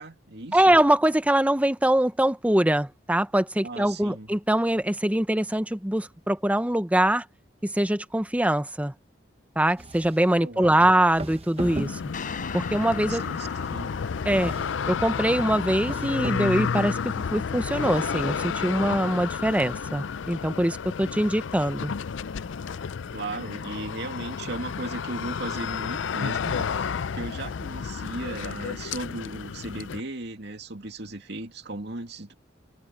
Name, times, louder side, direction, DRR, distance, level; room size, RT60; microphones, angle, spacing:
voice 1, 0.0-0.8 3.6-4.3 10.4-11.0 13.1-13.9 23.1-32.3, right 2 dB, 65° right, 2.5 m, -37 dB
voice 2, 0.5-7.2 7.6-8.9 9.6-12.0 12.5-13.3 14.3-14.5 14.9-17.0 17.3-21.9, right 1 dB, 10° right, 0.8 m, -23 dB
sound 1, 9.8-10.4 11.1-12.4 14.3-15.0 15.8-16.6, right 1 dB, 35° right, 1.0 m, -37 dB
sound 2, 11.6-30.0, left 6 dB, 85° left, 0.5 m, -31 dB
sound 3, 12.1-21.3, left 4 dB, 45° left, 5.6 m, -43 dB
head